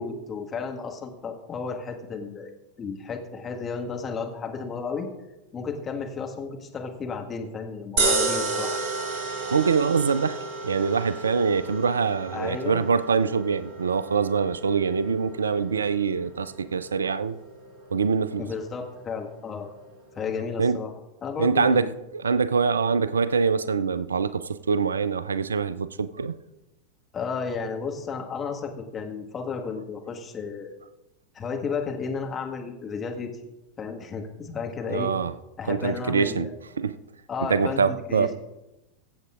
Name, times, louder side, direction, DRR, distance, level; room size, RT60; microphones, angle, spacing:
voice 1, 0.0-2.5 2.8-5.1 5.5-8.9 12.3-12.8 18.4-19.7 20.1-20.9 21.2-21.9 27.1-30.7 31.3-33.3 33.8-35.1 35.6-36.5 37.3-38.3, left 5 dB, 20° left, 1.5 m, -33 dB
sound 1, 8.0-20.3, right 3 dB, 40° right, 2.0 m, -33 dB
voice 2, 9.5-17.4 17.9-18.4 20.6-20.8 21.4-21.9 22.2-26.4 34.9-35.3 35.7-36.5 36.8-37.0 37.5-38.3, right 5 dB, 70° right, 0.4 m, -24 dB
22.5 x 7.9 x 2.4 m
figure-of-eight pair, 90°, 0 cm